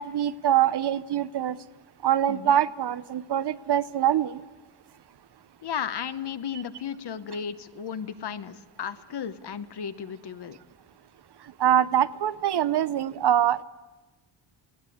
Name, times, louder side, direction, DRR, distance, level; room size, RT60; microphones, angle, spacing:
voice 1, 0.0-1.6 2.0-4.4 11.6-13.6, right 10 dB, 60° right, 17 dB, 0.7 m, -24 dB
voice 2, 5.6-10.6, left 7 dB, 60° left, 12 dB, 1.0 m, -34 dB
20.0 x 17.0 x 8.5 m, 1.2 s
wide cardioid pair, 140°, 47 cm